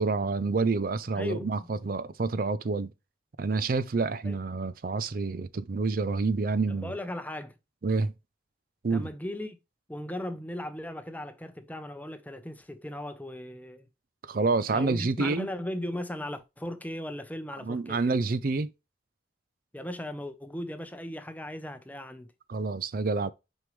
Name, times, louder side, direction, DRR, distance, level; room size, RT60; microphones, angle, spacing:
voice 1, 0.0-2.9 3.4-6.9 7.8-8.1 8.8-9.1 14.3-15.5 17.6-18.7 22.5-23.3, right 3 dB, 50° right, 0.5 m, -28 dB
voice 2, 1.1-1.7 4.2-4.4 6.7-7.5 8.9-9.6 9.9-13.9 14.7-18.1 19.7-22.3, left 1 dB, 10° left, 0.7 m, -37 dB
6.4 x 5.3 x 3.2 m
head